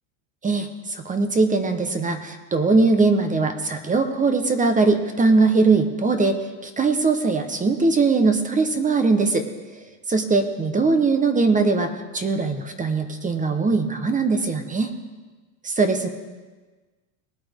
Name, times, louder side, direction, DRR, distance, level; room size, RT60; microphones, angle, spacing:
voice 1, 0.4-6.4 6.6-9.5 10.1-14.9 15.6-16.1, right 3 dB, 15° right, 8 dB, 1.0 m, -21 dB
19.5 x 8.7 x 3.6 m, 1.3 s
supercardioid pair, 120°, 46 cm